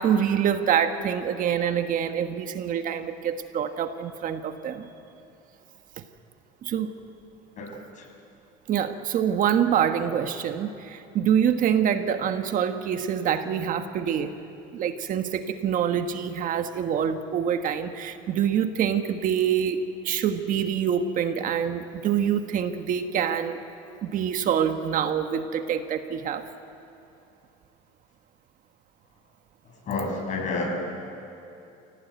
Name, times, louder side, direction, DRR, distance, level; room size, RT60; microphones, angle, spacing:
voice 1, 0.0-4.9 6.6-6.9 8.7-14.3 14.7-23.6 24.0-26.5, right 8 dB, 50° right, 7 dB, 1.4 m, -26 dB
voice 2, 7.6-8.0 29.9-30.7, left 3 dB, 45° left, 1 dB, 6.5 m, -30 dB
29.0 x 17.5 x 9.3 m, 2.8 s
cardioid pair, 120°, 18 cm